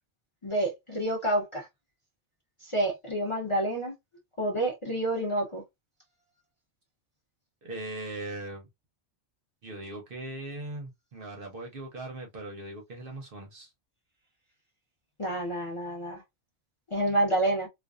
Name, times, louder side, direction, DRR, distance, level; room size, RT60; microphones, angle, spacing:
voice 1, 0.4-1.7 2.6-3.9 4.4-5.6 15.2-16.2 16.9-17.7, right 1 dB, 30° left, 0.6 m, -28 dB
voice 2, 7.6-8.7 9.6-13.7, right 2 dB, 55° right, 0.7 m, -39 dB
2.5 x 2.3 x 2.3 m
omnidirectional pair, 1.3 m